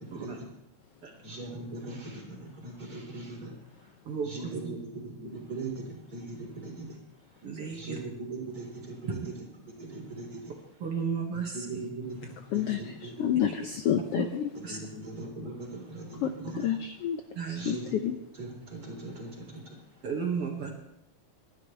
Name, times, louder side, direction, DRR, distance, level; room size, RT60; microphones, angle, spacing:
voice 1, 0.1-0.5 1.2-3.5 3.8-3.9 4.2-7.0 7.7-9.5 9.8-10.5 11.3-13.4 14.7-16.8 17.5-19.8, right 2 dB, 25° right, -2 dB, 4.4 m, -40 dB
voice 2, 4.1-4.6 7.4-8.0 10.8-11.8 14.2-14.3 14.6-14.8 17.4-17.7 20.0-20.7, right 6 dB, 50° right, 0 dB, 2.6 m, -33 dB
voice 3, 12.5-14.5 16.2-17.2 17.5-18.2, left 10 dB, 80° left, 6 dB, 1.3 m, -29 dB
29.5 x 11.5 x 3.3 m, 0.88 s
omnidirectional pair, 3.6 m